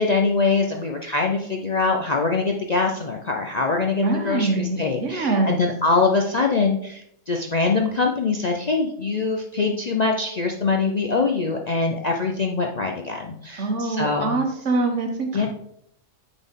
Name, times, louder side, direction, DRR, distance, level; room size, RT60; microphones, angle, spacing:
voice 1, 0.0-14.4 15.3-15.5, left 4 dB, 50° left, 1 dB, 0.5 m, -23 dB
voice 2, 4.0-5.5 13.6-15.5, right 3 dB, 65° right, 3 dB, 1.5 m, -24 dB
8.9 x 4.1 x 3.7 m, 0.73 s
omnidirectional pair, 1.4 m